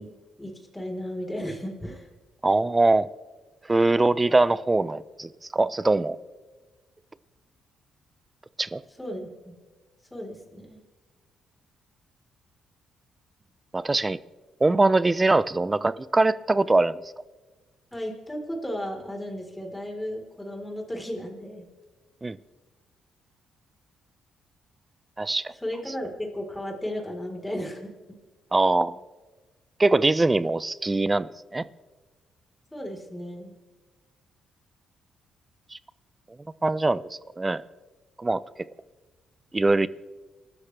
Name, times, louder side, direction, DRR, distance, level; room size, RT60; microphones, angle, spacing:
voice 1, 0.0-2.1 9.0-9.6 10.1-10.8 17.9-21.7 25.6-27.9 32.7-33.5, equal, 10° left, 1 dB, 4.0 m, -34 dB
voice 2, 2.4-3.1 3.7-6.2 8.6-8.8 13.7-14.2 14.6-17.0 22.2-22.4 25.2-25.5 28.5-29.0 29.8-31.6 35.7-35.8 36.6-37.1 37.4-37.6 38.2-38.4 39.5-39.9, right 2 dB, 20° right, 17 dB, 0.7 m, -22 dB
29.0 x 13.5 x 3.4 m, 1.3 s
cardioid pair, 90°, 0 cm